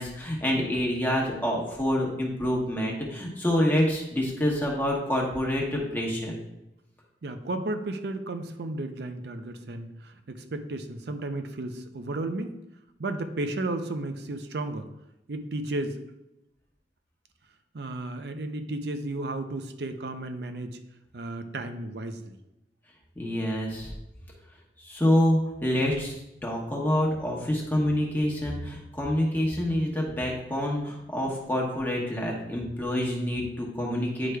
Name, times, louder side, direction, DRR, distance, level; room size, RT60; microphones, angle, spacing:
voice 1, 0.0-6.4 23.2-23.9 24.8-26.1 26.4-34.4, left 1 dB, 10° left, -2 dB, 1.1 m, -27 dB
voice 2, 7.2-12.5 13.0-14.9 15.3-16.0 17.7-20.8 21.1-22.4, right 2 dB, 65° right, 8 dB, 0.6 m, -33 dB
9.5 x 4.8 x 2.3 m, 0.90 s
head